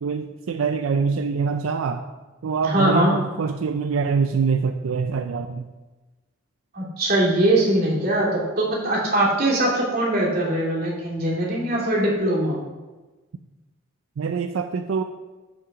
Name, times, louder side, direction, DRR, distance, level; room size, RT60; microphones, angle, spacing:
voice 1, 0.0-2.0 2.4-5.7 14.2-15.0, right 5 dB, 85° right, 7 dB, 0.4 m, -24 dB
voice 2, 2.6-3.1 6.7-12.6, right 1 dB, 45° right, -5 dB, 2.6 m, -21 dB
7.6 x 5.9 x 4.8 m, 1.2 s
head